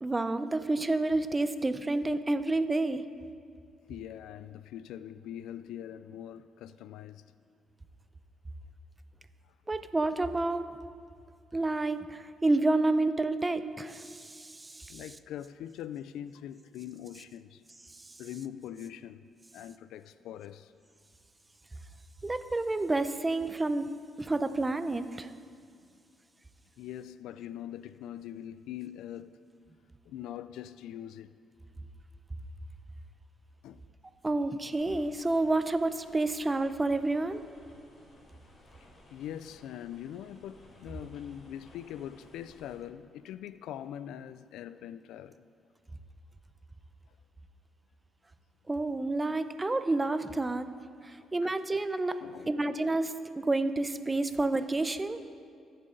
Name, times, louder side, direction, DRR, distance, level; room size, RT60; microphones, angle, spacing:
voice 1, 0.0-3.0 9.7-10.7 11.5-15.0 22.2-23.9 24.2-25.3 34.2-37.4 48.7-50.7 51.0-52.2 52.5-55.2, right 2 dB, 20° right, 0.6 m, -29 dB
voice 2, 3.9-7.2 14.9-17.6 18.2-19.2 19.5-20.7 26.8-29.4 30.1-31.3 33.6-33.8 39.1-45.4 51.2-51.5 52.2-52.5, left 10 dB, 85° left, 0.3 m, -42 dB
sound 1, 34.7-42.8, left 1 dB, 40° left, 3.8 m, -58 dB
22.0 x 7.7 x 3.9 m
cardioid pair, 90°, 0 cm